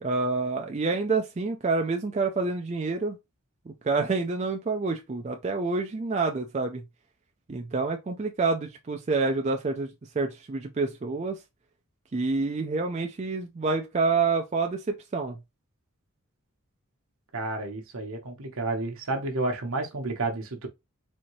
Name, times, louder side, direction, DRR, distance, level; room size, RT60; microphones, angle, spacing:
voice 1, 0.0-3.2 3.7-6.8 7.5-11.4 12.1-15.4, right 3 dB, 30° right, 0.4 m, -28 dB
voice 2, 17.3-20.7, right 2 dB, 75° right, 1.0 m, -31 dB
4.3 x 2.7 x 3.0 m
head